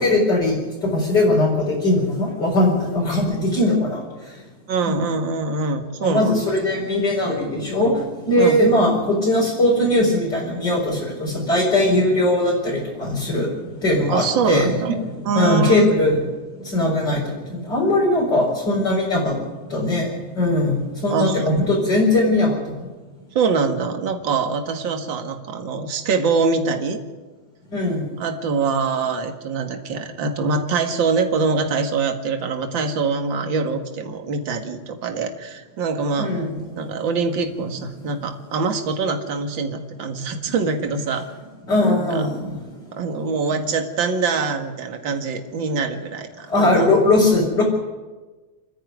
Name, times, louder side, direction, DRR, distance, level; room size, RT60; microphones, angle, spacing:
voice 1, 0.0-4.0 4.9-5.0 6.0-13.5 13.8-16.2 16.6-19.3 19.7-20.1 20.4-22.9 27.7-28.0 36.2-36.5 40.5-40.6 41.7-42.6 46.5-47.6, left 1 dB, 35° left, -5 dB, 5.3 m, -20 dB
voice 2, 4.7-6.5 8.4-8.6 14.1-14.9 15.2-16.0 21.1-21.4 23.3-27.0 28.2-36.3 36.7-41.3 41.8-42.3 42.9-46.9, right 4 dB, 45° right, 5 dB, 2.3 m, -24 dB
30.0 x 10.5 x 9.4 m, 1.3 s
omnidirectional pair, 3.4 m